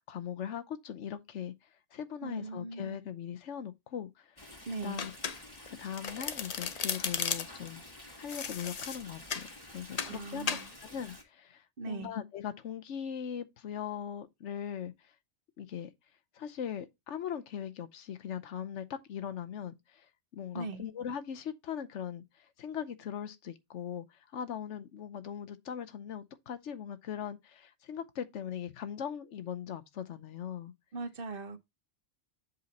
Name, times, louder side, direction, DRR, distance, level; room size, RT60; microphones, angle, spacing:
voice 1, 0.1-1.5 1.9-4.5 4.8-5.1 5.7-7.8 8.2-15.1 15.6-15.9 16.3-20.1 20.3-30.7, left 8 dB, 85° left, 1.1 m, -40 dB
voice 2, 2.2-3.1 4.7-5.1 10.0-10.7 11.8-12.1 20.5-20.9 30.9-31.6, right 3 dB, 55° right, 1.1 m, -40 dB
Stream, 4.4-11.2, left 1 dB, 20° left, 1.8 m, -50 dB
Domestic sounds home sounds, 5.0-5.7 6.0-7.7 8.3-9.5 10.0-10.2 10.5-10.7, left 6 dB, 45° left, 0.6 m, -35 dB
7.8 x 4.2 x 4.1 m
omnidirectional pair, 1.2 m